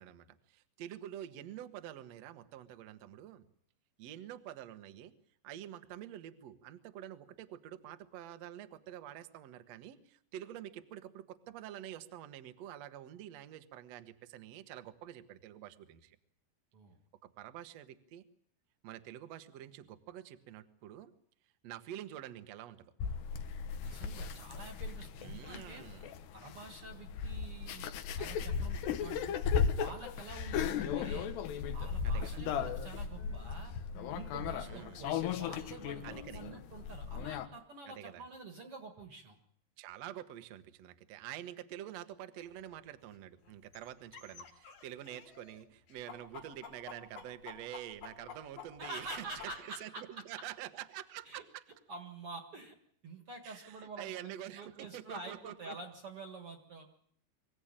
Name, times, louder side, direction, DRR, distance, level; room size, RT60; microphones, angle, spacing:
voice 1, 0.0-3.5 4.0-5.1 5.4-16.2 17.2-18.2 18.8-21.1 21.6-22.9 25.2-26.1 32.0-32.4 34.6-35.0 36.0-36.4 37.9-38.2 39.8-51.6 53.4-55.8, right 12 dB, 70° right, 9 dB, 1.6 m, -47 dB
sound 1, 23.0-37.5, left 7 dB, 80° left, 3.3 m, -36 dB
voice 2, 23.8-25.8 26.3-27.9 28.2-29.4 29.7-31.3 31.7-33.7 34.1-39.4 48.8-50.0 51.3-51.4 51.9-52.8 53.0-56.9, right 3 dB, 50° right, 5 dB, 1.9 m, -47 dB
sound 2, 31.6-32.1 32.3-37.6, left 6 dB, 40° left, 1.9 m, -57 dB
sound 3, 42.5-42.6 43.1-43.2 43.5-45.6 45.9-49.6, left 7 dB, 60° left, 4.6 m, -49 dB
24.5 x 16.5 x 8.9 m, 0.67 s
omnidirectional pair, 4.9 m